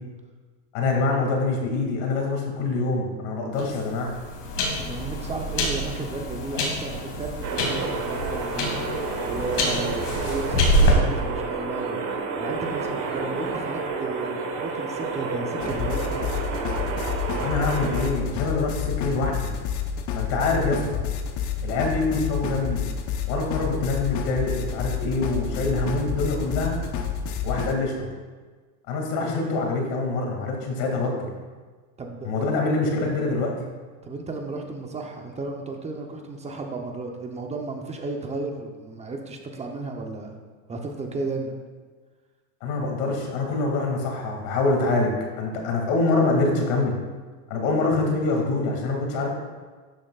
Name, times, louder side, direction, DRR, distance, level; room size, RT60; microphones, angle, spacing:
voice 1, 0.7-4.1 17.3-19.5 20.1-21.0 21.6-22.8 23.3-26.8 27.4-28.1 28.9-31.3 32.2-33.5 42.6-47.0 47.5-49.3, left 3 dB, 60° left, 1 dB, 2.5 m, -25 dB
sound 1, 3.5-10.9, left 1 dB, 90° left, 2.7 m, -26 dB
voice 2, 4.8-12.0 12.4-16.2 32.0-32.6 34.0-40.4 40.7-41.5, right 3 dB, 15° right, 2 dB, 0.8 m, -34 dB
sound 2, 7.4-18.1, right 4 dB, 45° right, 1.5 m, -30 dB
sound 3, 15.6-27.7, left 7 dB, 45° left, 1.0 m, -29 dB
12.0 x 7.3 x 2.4 m, 1.4 s
supercardioid pair, 135°, 43 cm